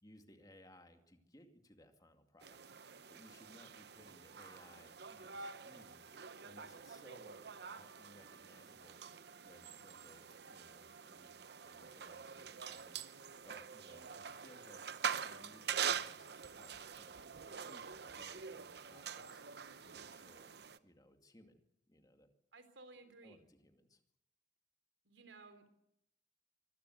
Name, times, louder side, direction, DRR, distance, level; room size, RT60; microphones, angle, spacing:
voice 1, 0.0-9.0 9.4-11.4 11.6-14.8 15.2-17.1 17.4-19.4 19.8-22.3 23.2-24.0, left 1 dB, 20° left, 5 dB, 2.3 m, -63 dB
sound 1, 2.4-20.8, right 7 dB, 65° right, 0.9 m, -45 dB
voice 2, 22.5-23.4 25.0-25.7, right 3 dB, 85° right, 10 dB, 3.5 m, -57 dB
24.5 x 15.5 x 8.0 m, 0.78 s
head